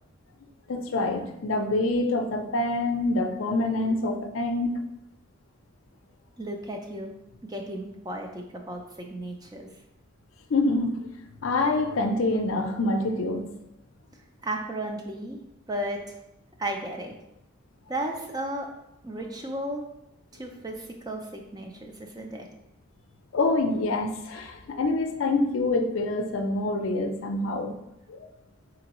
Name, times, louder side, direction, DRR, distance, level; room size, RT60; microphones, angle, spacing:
voice 1, 0.7-4.8 10.5-11.1 11.4-13.5 23.3-27.7 28.1-28.3, left 2 dB, 80° left, 5 dB, 0.5 m, -26 dB
voice 2, 6.4-7.1 7.4-9.7 14.4-15.4 15.7-16.2 16.6-17.1 17.9-18.7 19.0-19.8 20.3-22.5, right 1 dB, 20° right, 2 dB, 0.4 m, -34 dB
3.9 x 3.4 x 2.9 m, 0.86 s
head